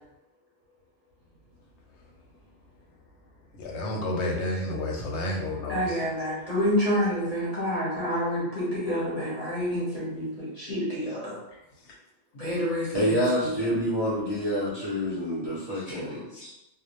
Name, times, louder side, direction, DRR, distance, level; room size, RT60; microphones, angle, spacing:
voice 1, 3.6-6.0, left 1 dB, 70° left, -1 dB, 0.8 m, -30 dB
voice 2, 5.7-11.4 12.3-13.5 15.9-16.0 16.3-16.5, equal, 35° left, -8 dB, 0.8 m, -28 dB
voice 3, 12.9-16.5, equal, 35° right, -10 dB, 0.4 m, -27 dB
2.1 x 2.0 x 2.8 m, 0.90 s
omnidirectional pair, 1.3 m